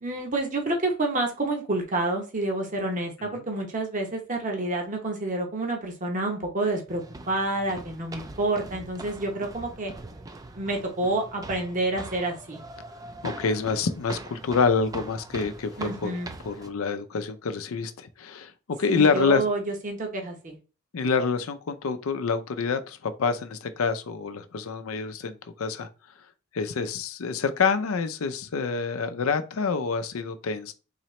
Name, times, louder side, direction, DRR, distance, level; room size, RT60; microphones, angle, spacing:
voice 1, 0.0-9.9 10.5-12.6 15.8-16.3 18.9-20.6, right 2 dB, 40° right, 0.8 m, -28 dB
sound 1, 6.9-16.7, right 2 dB, 15° right, 0.3 m, -42 dB
voice 2, 13.2-16.1 16.4-18.5 18.8-19.5 20.9-25.9 26.5-30.7, left 5 dB, 85° left, 0.5 m, -27 dB
4.0 x 2.9 x 3.1 m
head